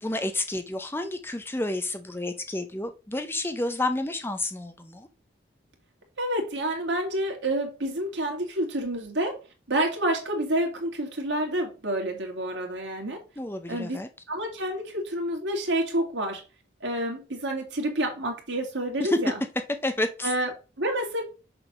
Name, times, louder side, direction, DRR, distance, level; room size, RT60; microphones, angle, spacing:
voice 1, 0.0-5.1 13.4-14.1 19.1-19.2 19.8-20.3, left 2 dB, 10° left, 0.6 m, -30 dB
voice 2, 6.2-9.4 9.7-13.2 13.7-14.0 14.3-16.4 16.8-19.3 20.2-21.2, right 1 dB, 80° right, 2.4 m, -28 dB
6.7 x 3.6 x 6.0 m
head